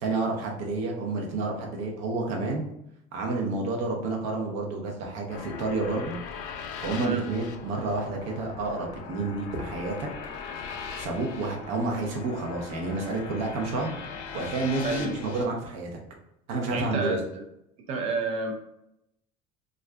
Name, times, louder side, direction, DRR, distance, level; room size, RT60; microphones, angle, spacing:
voice 1, 0.0-2.7 3.1-6.2 6.8-10.1 11.0-13.9 14.3-16.0 16.5-17.2, right 3 dB, 65° right, 0 dB, 0.8 m, -30 dB
sound 1, 5.3-15.4, left 6 dB, 65° left, 0.5 m, -40 dB
voice 2, 14.8-15.2 16.7-17.4 17.8-18.5, right 3 dB, 45° right, 3 dB, 0.3 m, -30 dB
2.5 x 2.3 x 3.3 m, 0.81 s
cardioid pair, 155°, 16 cm